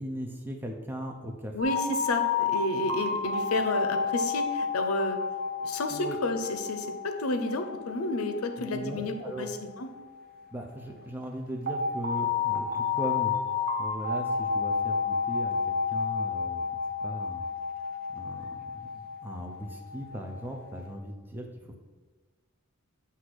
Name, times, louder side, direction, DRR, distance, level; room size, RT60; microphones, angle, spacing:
voice 1, 0.0-1.6 5.9-6.2 8.6-9.5 10.5-13.3 13.8-16.6 17.0-17.4 18.1-21.8, right 1 dB, 10° right, 1 dB, 0.6 m, -38 dB
voice 2, 1.5-5.2 5.6-9.9, left 2 dB, 85° left, 7 dB, 0.7 m, -31 dB
sound 1, 1.6-10.4 11.7-20.8, left 5 dB, 45° right, 0.8 m, -31 dB
7.9 x 2.8 x 6.1 m, 1.3 s
head